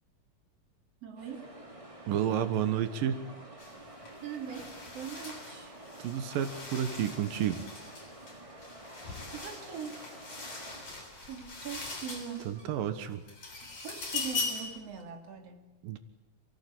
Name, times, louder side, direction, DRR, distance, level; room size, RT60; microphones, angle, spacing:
voice 1, 1.0-1.5 4.2-5.8 9.3-10.1 11.2-12.6 13.6-15.8, right 7 dB, 50° right, 4 dB, 3.6 m, -42 dB
sound 1, 1.2-10.8, right 1 dB, 10° right, 1.9 m, -49 dB
voice 2, 2.1-3.2 6.0-7.7 12.5-13.2 15.8-16.0, right 9 dB, 85° right, 10 dB, 3.0 m, -31 dB
sound 2, 3.6-3.8 4.1-12.7 13.1-14.8, left 3 dB, 45° left, 8.1 m, -41 dB
28.0 x 19.0 x 8.8 m, 1.1 s
omnidirectional pair, 3.9 m